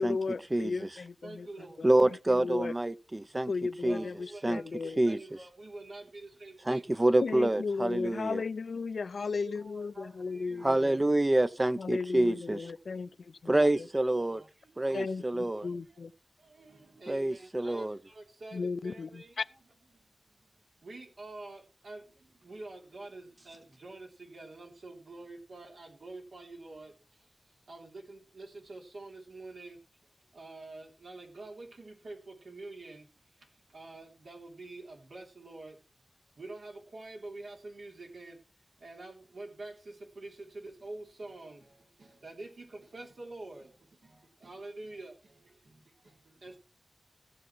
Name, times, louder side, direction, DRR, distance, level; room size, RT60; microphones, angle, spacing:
voice 1, 0.0-1.5 1.8-2.7 3.5-5.0 7.2-11.0 11.8-13.1 13.4-13.9 14.9-16.1 18.5-19.5, left 4 dB, 90° left, 0.5 m, -35 dB
voice 2, 1.2-1.9 3.3-3.4 3.9-7.0 9.4-11.0 13.5-15.2 15.5-16.0 16.4-19.4 20.0-27.3 27.7-29.8 30.3-33.1 33.4-35.8 36.4-38.4 38.8-46.6, right 2 dB, 85° right, 3.4 m, -47 dB
voice 3, 1.8-3.5 3.8-4.0 4.4-4.6 5.0-5.2 6.7-8.4 10.6-12.6 13.5-14.4 14.8-15.7 17.1-18.0, right 1 dB, 30° right, 0.6 m, -27 dB
15.5 x 6.9 x 4.6 m
cardioid pair, 50°, 0 cm